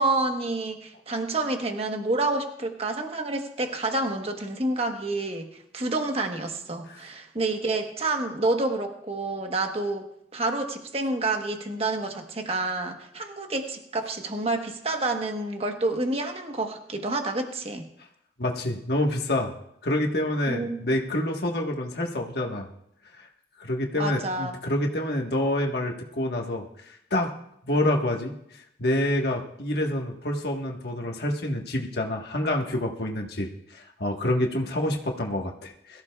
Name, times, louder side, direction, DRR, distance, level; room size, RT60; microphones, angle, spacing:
voice 1, 0.0-5.5 5.7-10.1 10.3-17.9 20.5-20.9 24.0-24.5, right 2 dB, 35° right, 4 dB, 1.2 m, -28 dB
voice 2, 18.4-19.5 19.8-22.7 23.2-23.3 23.6-27.3 27.7-28.4 28.8-36.0, left 1 dB, 60° left, 1 dB, 1.5 m, -27 dB
22.0 x 14.0 x 2.4 m, 0.76 s
head